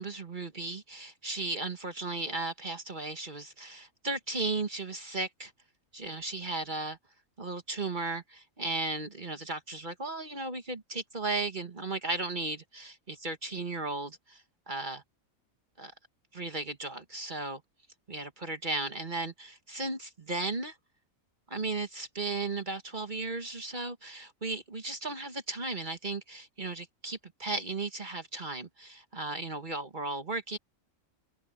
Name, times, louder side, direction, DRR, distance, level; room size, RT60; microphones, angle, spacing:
voice 1, 0.0-5.5 5.9-7.0 7.4-15.0 15.8-15.9 16.3-17.6 18.1-20.8 21.5-30.6, right 3 dB, 35° right, 1.6 m, -35 dB
omnidirectional pair, 1.4 m